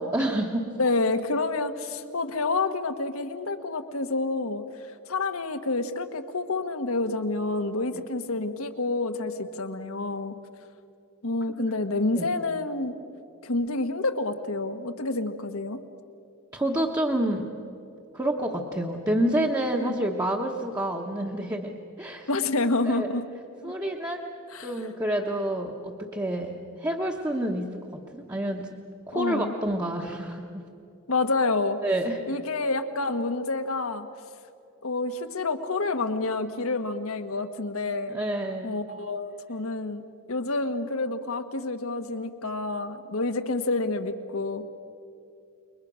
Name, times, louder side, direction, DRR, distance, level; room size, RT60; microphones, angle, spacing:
voice 1, 0.0-0.7 12.2-12.3 16.5-17.5 18.1-22.3 22.9-23.1 23.6-24.3 24.6-27.8 28.1-28.7 29.1-30.6 31.8-32.2 38.1-38.7, right 1 dB, 15° right, -1 dB, 1.2 m, -28 dB
voice 2, 0.8-4.6 5.1-10.3 11.2-12.9 13.4-15.8 19.8-19.9 22.3-23.2 23.6-23.7 24.5-24.7 29.1-29.6 31.1-31.8 32.3-34.1 34.8-38.2 38.6-40.0 40.3-44.7, left 3 dB, 75° left, 7 dB, 1.3 m, -28 dB
28.0 x 23.0 x 6.3 m, 2.7 s
head